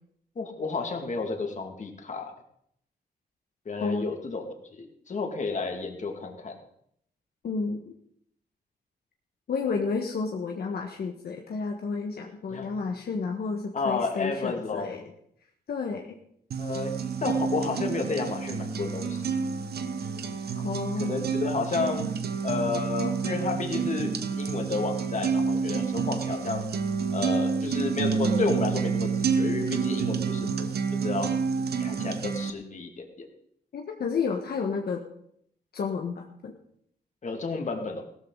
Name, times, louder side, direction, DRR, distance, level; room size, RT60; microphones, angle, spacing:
voice 1, 0.4-2.3 3.7-4.5 4.7-6.6 12.5-12.7 13.7-15.0 16.6-16.9 17.2-19.4 21.0-22.1 22.4-26.6 27.1-31.3 31.8-33.3 37.2-38.0, left 4 dB, 45° left, 4 dB, 2.5 m, -31 dB
voice 2, 7.4-7.9 9.5-15.0 15.7-16.2 20.6-21.1 33.7-35.0 35.7-36.5, left 5 dB, 70° left, 2 dB, 1.6 m, -31 dB
sound 1, 16.5-32.5, right 5 dB, 75° right, 1.2 m, -29 dB
17.0 x 13.5 x 4.1 m, 0.69 s
wide cardioid pair, 130°, 17 cm